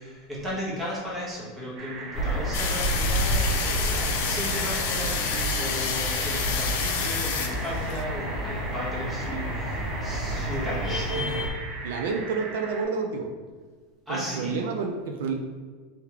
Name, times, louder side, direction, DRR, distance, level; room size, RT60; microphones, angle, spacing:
voice 1, 0.0-11.4 14.1-14.6, equal, 10° right, -7 dB, 1.3 m, -35 dB
sound 1, 1.8-12.8, right 3 dB, 40° right, 0.7 m, -39 dB
sound 2, 2.1-11.5, right 1 dB, 35° left, 0.8 m, -30 dB
sound 3, 2.5-8.0, left 7 dB, 70° left, 0.4 m, -29 dB
voice 2, 11.8-13.3 14.1-15.3, right 5 dB, 75° right, 3 dB, 0.4 m, -29 dB
3.7 x 3.5 x 3.0 m, 1.5 s
supercardioid pair, 155°, 0 cm